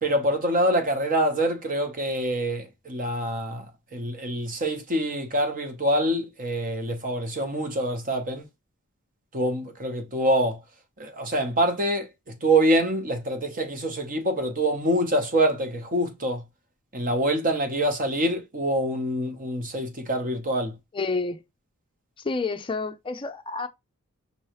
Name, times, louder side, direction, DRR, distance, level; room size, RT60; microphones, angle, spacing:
voice 1, 0.0-3.7 3.9-8.5 9.3-10.6 11.0-12.1 12.4-16.4 16.9-20.7, right 1 dB, 40° right, 1.0 m, -25 dB
voice 2, 20.9-21.4 22.2-23.7, left 3 dB, 25° left, 0.5 m, -29 dB
5.4 x 3.1 x 3.0 m
head